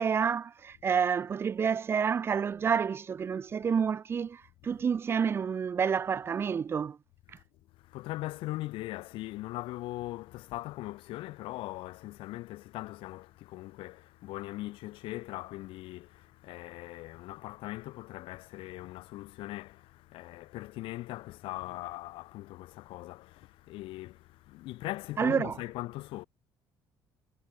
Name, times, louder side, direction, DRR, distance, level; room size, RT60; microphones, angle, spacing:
voice 1, 0.0-7.0 25.2-25.6, right 6 dB, 25° right, 0.3 m, -29 dB
voice 2, 7.7-26.3, left 18 dB, 80° left, 1.6 m, -40 dB
cardioid pair, 130°, 9 cm